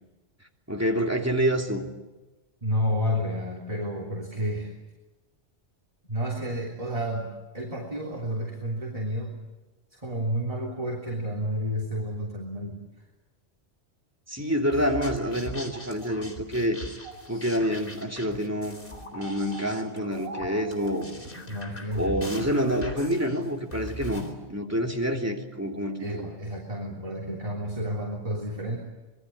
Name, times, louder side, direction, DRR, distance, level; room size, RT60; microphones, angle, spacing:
voice 1, 0.7-1.9 14.3-16.8 17.3-18.8 19.0-21.1 21.9-26.2, equal, 15° right, 1 dB, 2.9 m, -27 dB
voice 2, 2.6-4.7 6.1-9.3 9.9-12.8 17.3-17.4 21.5-22.3 26.0-28.8, equal, 30° right, -1 dB, 3.5 m, -31 dB
sound 1, 14.7-24.3, equal, 50° left, 4.2 m, -40 dB
26.0 x 22.0 x 8.7 m, 1.1 s
omnidirectional pair, 1.2 m